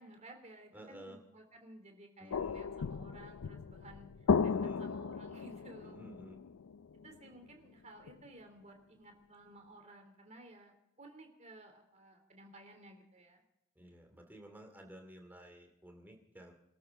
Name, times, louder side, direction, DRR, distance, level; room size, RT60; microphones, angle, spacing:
voice 1, 0.0-6.0 7.0-13.4, right 1 dB, 30° right, 4 dB, 3.1 m, -55 dB
voice 2, 0.7-1.2 2.2-2.6 4.5-4.8 5.8-6.4 13.8-16.5, equal, 10° right, 3 dB, 2.5 m, -53 dB
sound 1, 2.3-7.5 8.1-8.2, left 5 dB, 85° left, 0.5 m, -35 dB
27.0 x 13.0 x 3.9 m, 0.84 s
head